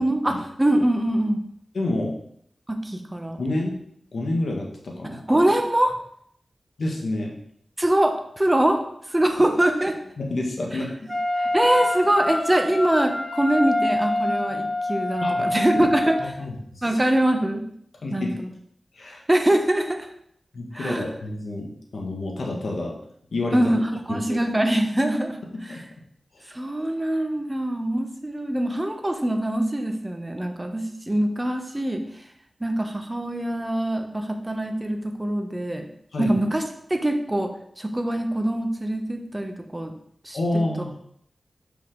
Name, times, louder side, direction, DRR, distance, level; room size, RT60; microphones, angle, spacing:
voice 1, 0.0-1.4 2.7-3.4 5.0-5.9 7.8-8.8 9.1-10.0 11.4-16.2 16.8-17.6 18.1-18.5 19.3-20.1 20.7-21.0 23.5-25.4 25.6-25.8 26.5-32.0 32.6-35.8 36.2-36.6 36.9-37.5 37.8-39.9 40.2-40.6, right 1 dB, 20° right, 5 dB, 1.0 m, -23 dB
voice 2, 1.7-2.2 3.4-3.7 4.1-5.2 6.8-7.3 10.2-11.1 15.2-15.9 16.2-17.0 18.0-18.3 18.9-19.2 20.5-22.9 23.3-23.7 24.1-24.4 25.7-25.8 36.1-36.4 40.3-41.0, left 2 dB, 80° left, 0 dB, 1.6 m, -28 dB
Wind instrument woodwind instrument, 11.1-16.3, left 1 dB, 25° left, 2.3 m, -26 dB
6.6 x 5.4 x 3.9 m, 0.68 s
wide cardioid pair, 65°, 0 cm